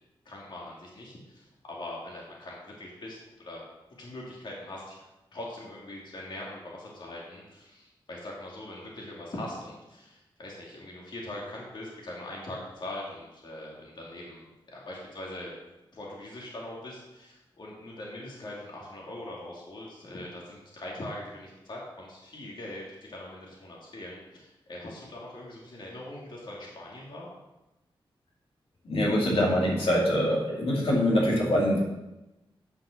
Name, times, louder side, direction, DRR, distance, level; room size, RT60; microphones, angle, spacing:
voice 1, 0.3-3.6 4.0-5.0 5.3-15.5 15.9-22.8 23.1-27.3, left 1 dB, 55° left, -4 dB, 2.3 m, -42 dB
voice 2, 28.8-31.8, equal, 85° left, -3 dB, 2.5 m, -24 dB
8.8 x 5.7 x 6.4 m, 1.0 s
wide cardioid pair, 155°, 9 cm